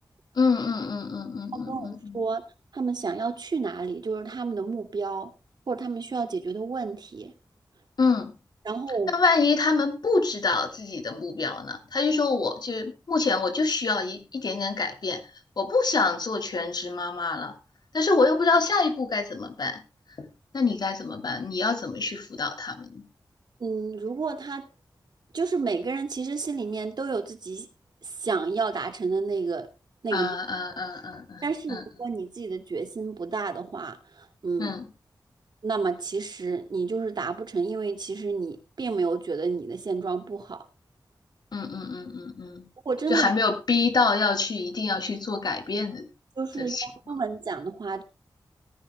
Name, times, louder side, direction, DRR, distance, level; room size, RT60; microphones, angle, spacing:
voice 1, 0.3-2.2 8.0-8.3 9.1-15.2 15.6-17.5 17.9-19.8 20.2-20.3 20.5-23.1 30.1-31.8 34.6-34.9 41.5-42.7 43.1-46.1 46.6-46.8, left 4 dB, 65° left, 6 dB, 2.9 m, -26 dB
voice 2, 1.7-2.4 2.7-5.3 5.7-7.3 8.6-9.1 23.6-24.7 25.3-27.7 28.0-29.7 30.0-30.4 31.4-34.8 35.6-40.6 42.8-43.3 46.4-48.0, right 4 dB, 65° right, 7 dB, 2.3 m, -30 dB
17.5 x 15.0 x 2.2 m, 0.31 s
wide cardioid pair, 95°, 8 cm